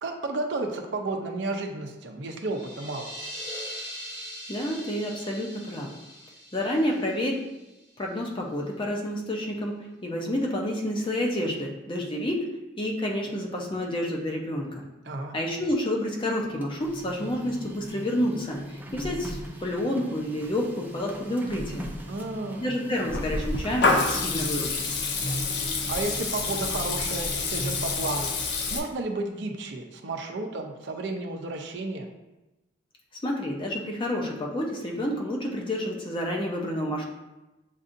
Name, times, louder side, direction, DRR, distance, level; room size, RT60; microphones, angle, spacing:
voice 1, 0.0-3.1 15.0-15.4 22.1-22.7 25.9-28.3 28.7-32.1, right 2 dB, 65° right, 3 dB, 0.6 m, -32 dB
sound 1, 2.4-8.0, equal, 45° left, 1.5 m, -41 dB
voice 2, 4.5-5.9 6.5-7.4 8.0-9.7 10.0-12.5 12.8-14.7 15.3-21.9 22.6-24.8 33.2-37.0, left 1 dB, 25° left, 0 dB, 0.7 m, -29 dB
Printer, 16.4-28.5, equal, 10° right, 0.5 m, -41 dB
Water tap faucet / Liquid, 23.1-28.8, left 3 dB, 65° left, 0.6 m, -27 dB
7.2 x 2.7 x 2.6 m, 1.0 s
head